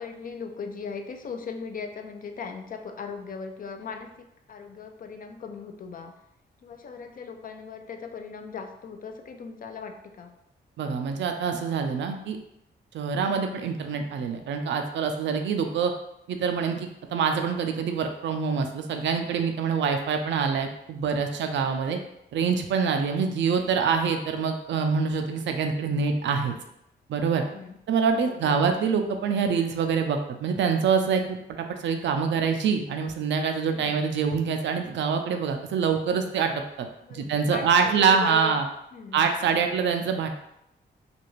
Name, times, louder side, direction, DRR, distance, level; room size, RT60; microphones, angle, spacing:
voice 1, 0.0-4.2 4.5-6.1 6.6-10.3 15.2-15.4 21.3-21.7 27.3-27.8 28.2-28.6 33.7-34.0 37.0-38.6 38.9-39.3, left 5 dB, 45° left, 5 dB, 0.4 m, -39 dB
voice 2, 10.8-12.4 12.9-15.9 16.3-22.0 22.3-26.5 27.1-27.4 27.9-38.7 39.1-40.3, right 6 dB, 75° right, 5 dB, 0.4 m, -25 dB
2.5 x 2.3 x 3.0 m, 0.80 s
cardioid pair, 70°, 19 cm